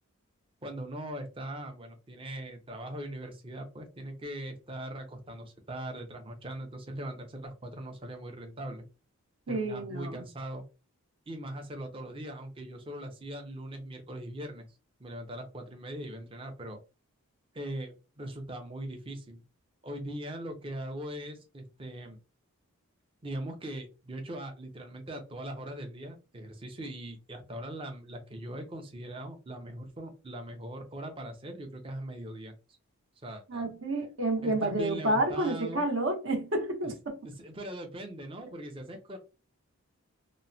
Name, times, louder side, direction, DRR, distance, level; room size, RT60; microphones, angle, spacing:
voice 1, 0.6-8.8 9.5-10.6 11.3-14.7 15.0-16.8 17.5-19.4 19.8-22.2 23.2-32.5 33.2-33.7 34.4-35.8 37.4-39.2, right 1 dB, 25° right, 0.5 m, -40 dB
voice 2, 9.5-10.3 33.5-37.2, right 2 dB, 60° right, 0.9 m, -30 dB
3.0 x 2.1 x 2.6 m
head